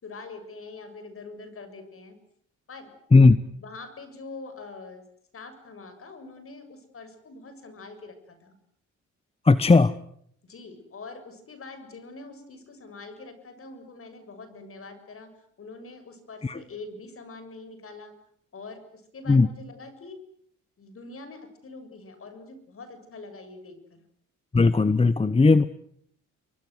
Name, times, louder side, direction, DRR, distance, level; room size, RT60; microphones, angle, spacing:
voice 1, 0.0-2.2 2.7-2.9 3.6-5.0 5.3-8.6 10.4-15.3 15.6-18.1 18.5-20.2 20.8-24.0, left 3 dB, 45° left, 10 dB, 7.1 m, -44 dB
voice 2, 9.4-9.9 16.4-16.6 19.3-19.5 24.5-25.7, left 3 dB, 20° left, 15 dB, 1.0 m, -17 dB
29.0 x 23.5 x 8.1 m, 0.68 s
cardioid pair, 90°, 30 cm